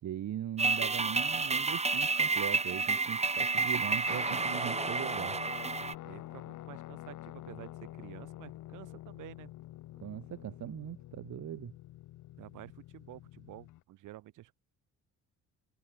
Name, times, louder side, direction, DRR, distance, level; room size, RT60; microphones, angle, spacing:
voice 1, 0.0-5.4 10.0-11.7, right 11 dB, 70° right, 3.2 m, -40 dB
sound 1, 0.6-5.9, right 4 dB, 20° right, 1.7 m, -30 dB
Guitar, 4.1-13.8, left 15 dB, 85° left, 3.7 m, -46 dB
voice 2, 6.0-9.5 12.4-14.5, right 16 dB, 90° right, 4.6 m, -50 dB
cardioid pair, 90°, 30 cm